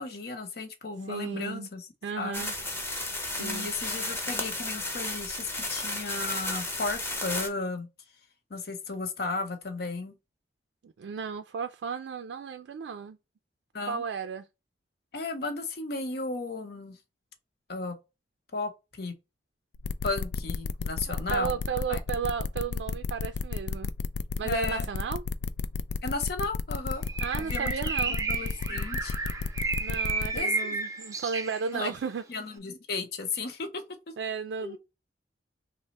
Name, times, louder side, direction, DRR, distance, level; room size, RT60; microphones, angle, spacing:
voice 1, 0.0-1.8 2.2-2.4 3.4-7.9 8.5-10.2 13.7-14.0 15.1-17.0 17.7-18.0 18.5-18.7 19.0-19.2 20.0-21.6 21.9-22.0 24.4-24.9 26.0-27.0 27.3-27.7 28.0-29.1 30.3-30.5 31.7-31.9 32.3-33.8 34.6-34.8, left 3 dB, 60° left, 0.8 m, -34 dB
voice 2, 1.1-1.7 2.0-2.5 3.4-3.7 10.8-13.2 13.9-14.5 21.3-23.9 24.4-25.2 27.2-28.2 29.8-32.2 34.2-34.8, right 6 dB, 90° right, 0.3 m, -34 dB
sound 1, 2.3-7.5, left 2 dB, 15° left, 0.7 m, -33 dB
sound 2, 19.8-30.4, left 5 dB, 90° left, 0.3 m, -32 dB
Bird, 27.1-32.0, right 3 dB, 20° right, 0.5 m, -32 dB
3.3 x 2.1 x 3.9 m
head